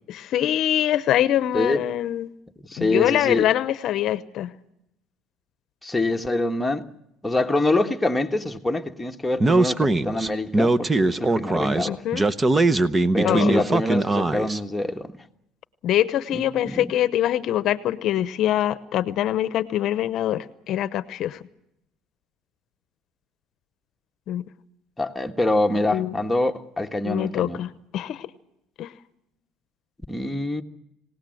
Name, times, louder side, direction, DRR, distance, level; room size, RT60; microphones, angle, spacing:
voice 1, 0.1-2.3 2.8-4.5 11.9-12.3 13.2-13.6 15.8-21.4 24.3-24.4 25.9-26.1 27.0-28.3 28.8-28.9, left 12 dB, 60° left, 0.8 m, -24 dB
voice 2, 1.5-1.8 2.7-3.5 5.8-6.9 7.2-12.0 13.1-15.1 16.3-16.9 25.0-27.6 30.1-30.6, left 2 dB, 5° left, 1.4 m, -25 dB
Speech, 9.4-14.6, right 2 dB, 20° right, 1.0 m, -21 dB
26.5 x 18.0 x 7.8 m
supercardioid pair, 100°, 0 cm